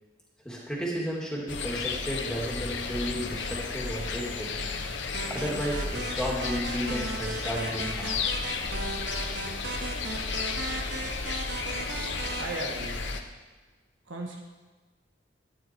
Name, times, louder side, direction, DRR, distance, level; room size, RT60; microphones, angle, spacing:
voice 1, 0.4-4.5 5.3-8.2, equal, 5° left, -4 dB, 2.5 m, -33 dB
sound 1, 1.5-13.2, left 4 dB, 65° left, 1.0 m, -33 dB
sound 2, 5.1-12.4, right 3 dB, 60° right, 1.2 m, -37 dB
voice 2, 12.4-13.1 14.0-14.4, right 2 dB, 75° right, 1 dB, 1.4 m, -36 dB
13.5 x 9.8 x 4.5 m, 1.3 s
head